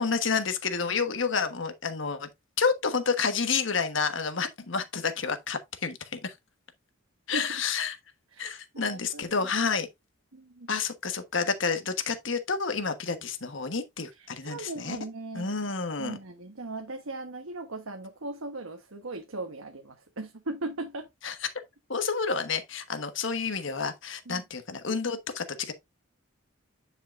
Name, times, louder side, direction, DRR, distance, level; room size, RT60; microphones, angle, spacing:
voice 1, 0.0-2.3 2.6-6.3 7.3-8.0 8.4-9.9 10.7-15.0 15.3-16.2 21.2-21.3 21.9-25.7, left 5 dB, 65° left, 1.3 m, -29 dB
voice 2, 8.3-9.4 10.3-10.7 14.2-15.5 16.0-21.1 24.3-24.4, right 2 dB, 85° right, 1.3 m, -38 dB
9.9 x 5.7 x 2.5 m
head